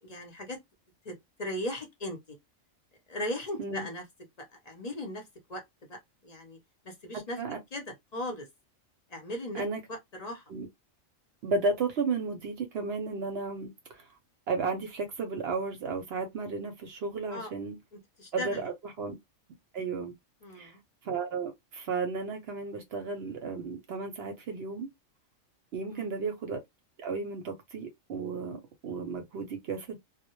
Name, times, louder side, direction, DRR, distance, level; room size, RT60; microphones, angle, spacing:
voice 1, 0.0-0.6 1.0-1.1 1.4-2.2 3.1-4.0 4.7-5.2 5.5-5.6 5.9-6.6 6.8-7.4 7.7-7.8 8.1-8.5 9.1-9.6 9.9-10.4 17.3-17.5 18.2-18.6 20.4-20.8 25.9-26.2, left 1 dB, 40° left, 0.6 m, -37 dB
voice 2, 11.4-14.1 14.5-17.8 18.3-19.1 19.7-20.1 20.5-20.8 21.0-24.9 25.7-26.6 27.0-30.0, right 4 dB, 65° right, 0.7 m, -33 dB
2.1 x 2.0 x 2.9 m
omnidirectional pair, 1.3 m